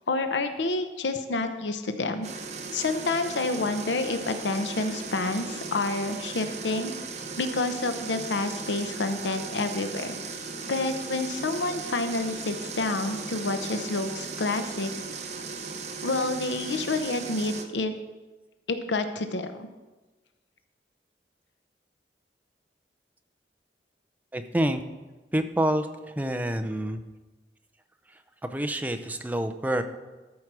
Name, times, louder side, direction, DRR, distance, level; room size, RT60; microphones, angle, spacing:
voice 1, 0.1-2.3 2.7-6.9 7.4-10.2 10.7-14.9 16.0-17.9 18.7-19.7, left 3 dB, 90° left, 8 dB, 0.7 m, -28 dB
sound 1, 2.2-17.6, right 4 dB, 40° right, 0.9 m, -37 dB
voice 2, 24.3-24.8 25.3-25.9 26.2-27.0 28.5-29.8, right 1 dB, 10° right, 7 dB, 0.5 m, -27 dB
13.0 x 4.7 x 6.0 m, 1.2 s
head